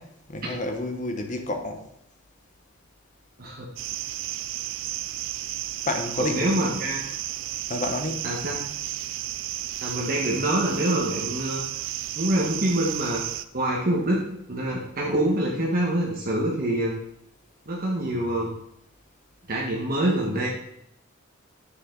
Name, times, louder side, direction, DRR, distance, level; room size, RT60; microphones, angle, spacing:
voice 1, 0.0-1.8 5.9-6.8 7.7-8.3, left 2 dB, 35° left, 5 dB, 1.1 m, -30 dB
sound 1, 3.8-13.4, right 13 dB, 60° right, 0.4 m, -33 dB
voice 2, 6.2-7.0 8.2-8.5 9.8-11.6 12.2-13.2 13.5-14.2 14.5-16.9 17.7-18.5 19.5-20.5, right 1 dB, 45° right, -3 dB, 1.6 m, -25 dB
9.4 x 6.8 x 3.9 m, 0.75 s
head